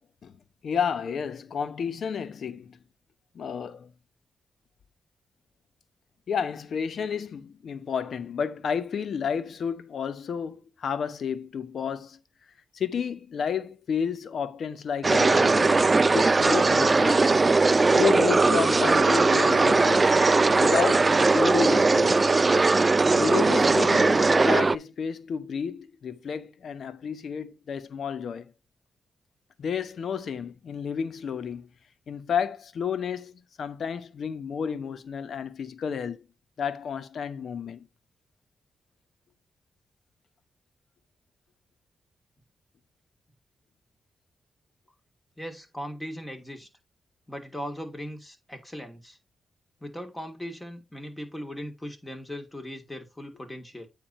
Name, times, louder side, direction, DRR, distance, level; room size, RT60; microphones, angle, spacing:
voice 1, 0.6-2.8 3.3-3.9 6.3-12.2 12.7-15.9 16.1-17.3 17.9-20.2 20.6-22.2 23.1-28.5 29.6-31.7 32.1-36.2 36.6-37.9, left 7 dB, 70° left, 1.0 m, -31 dB
sound 1, 15.0-24.8, right 3 dB, 35° right, 0.4 m, -20 dB
voice 2, 45.4-46.7 47.3-49.2 49.8-53.9, equal, 15° left, 3.0 m, -38 dB
9.0 x 3.6 x 4.3 m
supercardioid pair, 55°, 0 cm